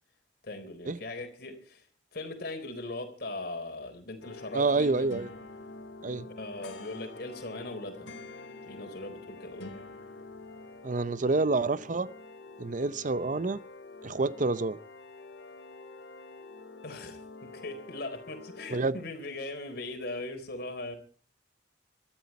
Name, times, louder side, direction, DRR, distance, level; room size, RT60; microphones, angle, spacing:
voice 1, 0.4-1.8 2.1-5.1 6.2-8.1 8.7-9.8 16.8-21.0, left 2 dB, 60° left, 4.0 m, -39 dB
sound 1, 4.2-18.8, left 3 dB, 85° left, 3.1 m, -47 dB
voice 2, 4.5-5.3 6.0-6.3 10.8-12.1 12.6-13.6 14.0-14.8 18.7-19.0, right 3 dB, 45° right, 0.7 m, -28 dB
22.0 x 13.5 x 4.3 m
head